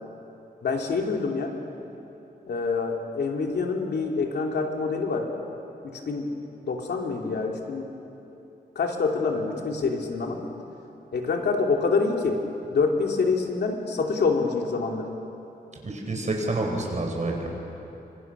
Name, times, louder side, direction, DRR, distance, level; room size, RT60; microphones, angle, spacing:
voice 1, 0.6-1.5 2.4-5.3 5.8-6.3 6.6-7.9 8.7-10.4 11.1-12.4 12.7-15.1, left 4 dB, 90° left, 1 dB, 2.8 m, -26 dB
voice 2, 15.8-17.5, right 2 dB, 45° right, 1 dB, 4.8 m, -28 dB
27.5 x 25.0 x 6.1 m, 2.9 s
wide cardioid pair, 140°, 17 cm